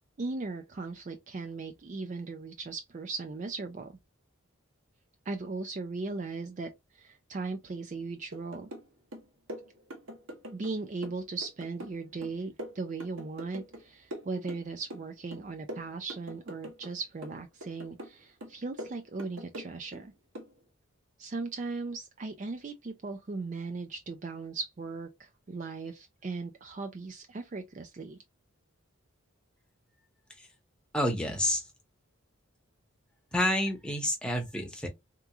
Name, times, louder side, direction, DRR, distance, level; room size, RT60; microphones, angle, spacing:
voice 1, 0.2-3.9 5.3-8.7 10.5-20.1 21.2-28.2, right 3 dB, 35° right, 0.3 m, -38 dB
sound 1, 8.3-8.9 9.1-10.7 11.0-13.8 14.1-15.1 15.3-16.9 17.2-18.1 18.4-20.0 20.3-20.5, equal, 65° right, 0.8 m, -43 dB
voice 2, 30.9-31.6 33.3-34.9, left 1 dB, 5° left, 0.8 m, -29 dB
3.5 x 2.9 x 2.3 m
head